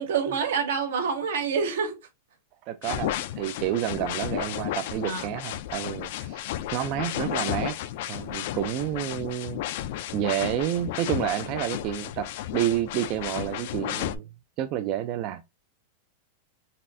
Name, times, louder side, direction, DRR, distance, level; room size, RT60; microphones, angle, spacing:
voice 1, 0.0-2.0 5.0-5.3, right 6 dB, 80° right, 1.3 m, -27 dB
voice 2, 2.7-7.8 8.1-9.8 10.1-14.3 14.6-15.4, right 12 dB, 35° right, 0.3 m, -30 dB
sound 1, 2.8-14.2, left 12 dB, 50° left, 0.3 m, -33 dB
4.1 x 2.5 x 2.5 m
supercardioid pair, 170°, 0 cm